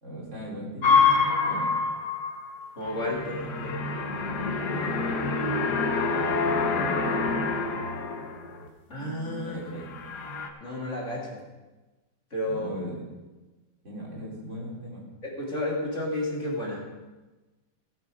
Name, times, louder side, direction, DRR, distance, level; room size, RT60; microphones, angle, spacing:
voice 1, 0.0-1.7 4.6-5.8 6.4-7.3 9.4-9.9 12.5-13.0 13.8-15.0, right 1 dB, 40° right, -4 dB, 3.4 m, -38 dB
sound 1, 0.8-8.7 9.0-9.5 9.8-10.5, left 4 dB, 65° left, 1.7 m, -26 dB
voice 2, 2.8-3.8 8.9-9.6 10.6-11.4 12.3-12.7 15.2-16.8, left 1 dB, 40° left, -3 dB, 2.8 m, -31 dB
18.0 x 7.5 x 5.1 m, 1.2 s
omnidirectional pair, 1.9 m